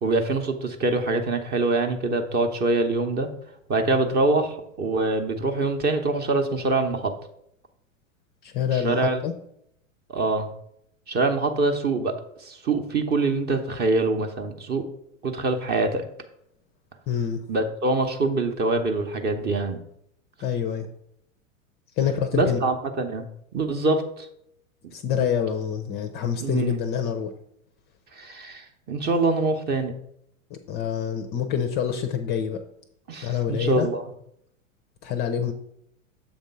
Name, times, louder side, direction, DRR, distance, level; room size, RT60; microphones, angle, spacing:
voice 1, 0.0-3.3 3.7-7.1 8.7-9.2 10.1-10.5 11.1-12.1 12.4-14.8 15.2-16.1 17.5-19.8 22.3-23.2 23.5-24.3 26.4-26.8 28.1-29.9 33.1-34.0, right 3 dB, 25° right, 7 dB, 0.8 m, -24 dB
voice 2, 8.4-9.3 17.1-17.4 20.4-20.9 22.0-22.6 24.9-27.3 30.7-32.6 33.2-33.9 35.0-35.5, left 8 dB, 25° left, 7 dB, 0.5 m, -26 dB
7.1 x 3.6 x 5.4 m, 0.73 s
figure-of-eight pair, 100°, 40 cm